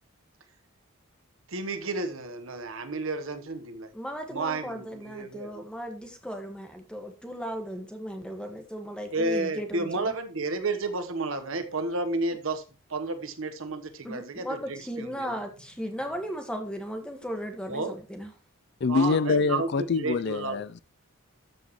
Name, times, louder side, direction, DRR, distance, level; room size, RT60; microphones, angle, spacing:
voice 1, 1.5-3.9 4.3-5.6 9.1-12.6 12.9-15.4 17.7-18.0 18.8-20.6, right 3 dB, 65° right, 1.1 m, -31 dB
voice 2, 3.9-9.9 14.0-18.3, equal, 5° left, 1.5 m, -36 dB
voice 3, 18.8-20.8, left 4 dB, 50° left, 0.4 m, -25 dB
13.0 x 6.2 x 3.1 m
head